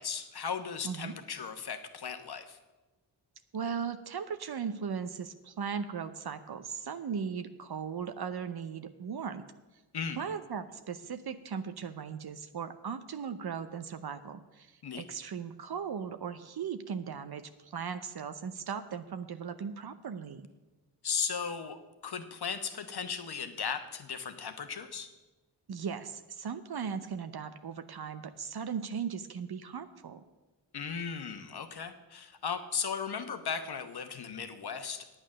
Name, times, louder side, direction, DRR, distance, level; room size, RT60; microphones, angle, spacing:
voice 1, 0.0-2.6 9.9-10.2 14.8-15.0 21.0-25.1 30.7-35.2, left 6 dB, 60° left, 8 dB, 1.1 m, -36 dB
voice 2, 3.5-9.4 10.2-20.4 25.7-30.2, right 6 dB, 60° right, 10 dB, 0.7 m, -38 dB
8.9 x 8.8 x 6.4 m, 1.1 s
cardioid pair, 45°, 44 cm